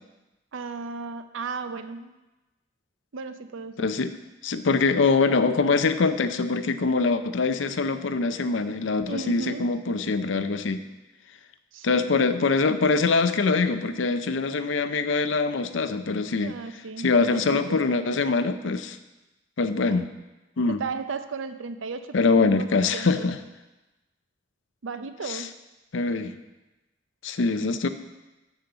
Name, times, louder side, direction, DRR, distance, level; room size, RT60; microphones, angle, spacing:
voice 1, 0.5-2.1 3.1-3.9 9.1-9.7 11.7-12.1 16.4-17.8 19.9-20.0 20.7-23.3 24.8-25.5, right 4 dB, 75° right, 10 dB, 0.6 m, -35 dB
voice 2, 3.8-4.1 4.4-10.8 11.8-16.5 17.0-19.0 19.6-20.1 20.6-20.8 22.1-23.4 25.3-25.4 25.9-26.3 27.2-27.9, left 4 dB, 70° left, 10 dB, 0.6 m, -23 dB
6.9 x 6.4 x 6.9 m, 1.1 s
head